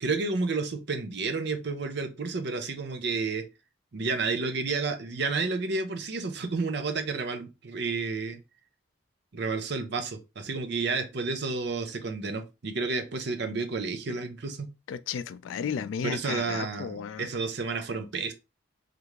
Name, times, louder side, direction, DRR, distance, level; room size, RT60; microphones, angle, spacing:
voice 1, 0.0-3.4 3.9-8.4 9.3-14.7 16.0-18.3, right 4 dB, 60° right, 0.6 m, -31 dB
voice 2, 14.9-17.3, left 7 dB, 75° left, 0.3 m, -34 dB
3.3 x 2.5 x 3.1 m
head